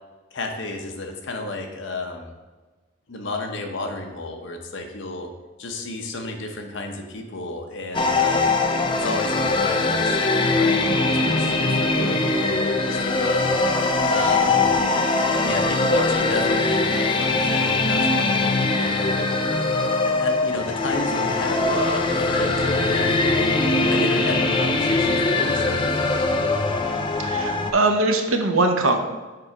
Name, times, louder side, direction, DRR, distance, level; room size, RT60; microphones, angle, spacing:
voice 1, 0.3-2.3 3.1-5.3 5.6-8.5 8.9-13.5 14.0-14.7 15.3-19.3 20.0-23.6 23.9-26.2, left 2 dB, 65° left, 3 dB, 0.8 m, -32 dB
sound 1, 7.9-27.7, left 3 dB, 25° left, 0.4 m, -21 dB
voice 2, 27.2-29.0, right 2 dB, 85° right, 5 dB, 0.8 m, -21 dB
6.8 x 3.4 x 4.9 m, 1.3 s
head